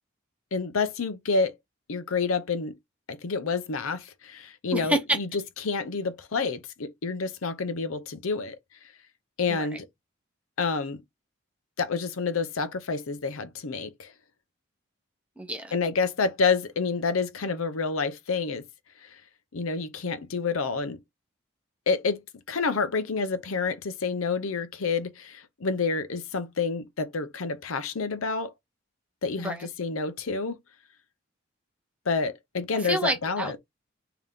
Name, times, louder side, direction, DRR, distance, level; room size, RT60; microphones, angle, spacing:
voice 1, 0.5-1.5 1.9-2.7 3.1-8.6 9.4-9.9 10.6-11.0 11.8-14.1 15.7-18.6 19.5-21.0 21.9-22.2 22.5-28.5 29.2-30.6 32.1-33.6, left 4 dB, 85° left, 0.7 m, -28 dB
voice 2, 4.7-5.2 9.5-9.7 15.4-15.8 29.4-29.7 32.8-33.6, right 1 dB, 5° right, 0.8 m, -28 dB
3.4 x 2.9 x 3.6 m
head